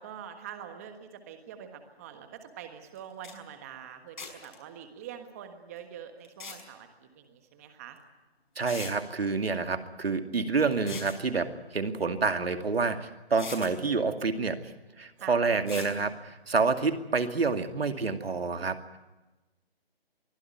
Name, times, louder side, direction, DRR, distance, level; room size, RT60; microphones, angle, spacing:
voice 1, 0.0-8.0 15.2-15.4, right 9 dB, 15° right, 7 dB, 1.4 m, -45 dB
sound 1, 2.9-3.0 3.2-3.3 4.2-4.6 6.2-6.6 8.0-8.1 8.7-8.9 10.7-11.2 12.7-12.8 13.3-13.7 15.7-15.9, left 5 dB, 50° left, 5.7 m, -40 dB
voice 2, 8.6-19.0, right 4 dB, 70° right, 7 dB, 2.4 m, -28 dB
23.5 x 15.5 x 9.5 m, 1.1 s
figure-of-eight pair, 165°, 31 cm